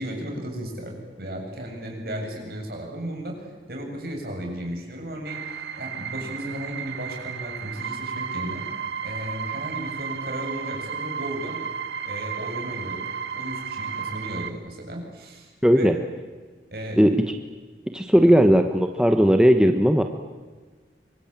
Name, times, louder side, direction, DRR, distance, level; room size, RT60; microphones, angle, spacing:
voice 1, 0.0-8.6 9.0-11.6 12.0-15.9 16.7-17.0 18.3-18.4, equal, 55° right, 1 dB, 7.7 m, -35 dB
sound 1, 5.2-14.5, right 7 dB, 80° right, 1.9 m, -33 dB
voice 2, 15.6-15.9 17.0-17.2 17.9-20.0, equal, 5° right, 5 dB, 1.1 m, -17 dB
25.5 x 24.5 x 8.9 m, 1.4 s
head